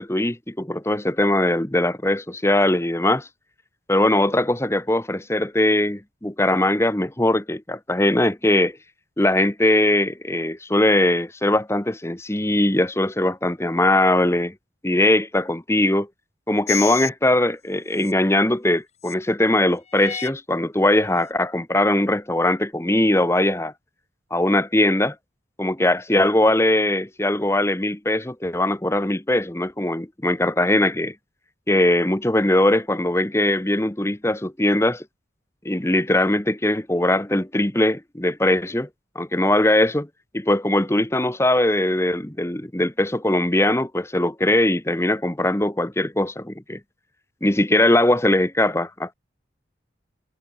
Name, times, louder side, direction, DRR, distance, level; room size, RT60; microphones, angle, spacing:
voice 1, 0.0-3.3 3.9-8.8 9.2-14.5 14.8-16.1 16.5-23.7 24.3-25.1 25.6-31.1 31.7-35.0 35.6-38.9 39.1-40.1 40.3-46.8 47.4-49.1, left 1 dB, 15° left, 1.1 m, -20 dB
sound 1, 16.7-17.1 17.9-18.1 19.0-19.1 19.9-20.3 21.0-21.1, left 9 dB, 35° left, 2.7 m, -30 dB
head